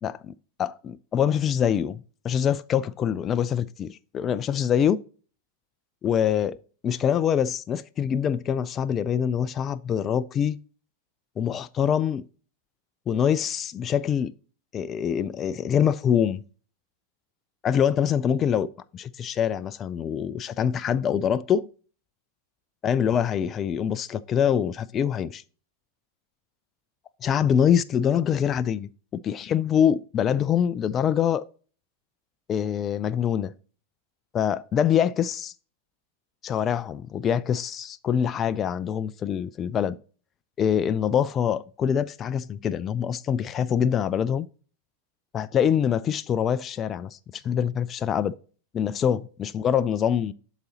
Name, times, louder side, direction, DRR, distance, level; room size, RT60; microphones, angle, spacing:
voice 1, 0.0-0.3 0.6-5.0 6.0-6.6 6.8-10.6 11.4-12.3 13.1-14.3 14.7-16.4 17.6-18.7 18.9-21.7 22.8-25.4 27.2-28.9 29.2-31.4 32.5-33.5 34.3-35.5 36.4-40.0 40.6-44.5 45.3-48.3 48.7-50.3, left 8 dB, 25° left, 0.3 m, -24 dB
11.5 x 4.0 x 2.8 m
figure-of-eight pair, 90°, 0 cm